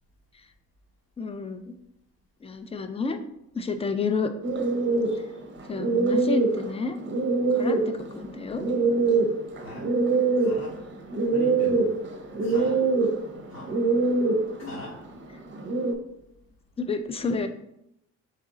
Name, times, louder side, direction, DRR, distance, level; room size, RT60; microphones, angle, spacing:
voice 1, 1.2-1.7 2.4-3.2 3.5-4.3 5.7-7.0 7.5-8.6 16.8-17.5, left 4 dB, 20° left, 8 dB, 0.4 m, -30 dB
sound 1, 4.4-15.9, right 3 dB, 40° right, 0.6 m, -24 dB
voice 2, 9.6-9.9 10.4-10.8 11.3-12.0 12.4-12.9 13.5-13.8 14.6-15.0, left 2 dB, 60° left, -4 dB, 0.9 m, -40 dB
3.6 x 3.2 x 3.8 m, 0.80 s
cardioid pair, 90°, 30 cm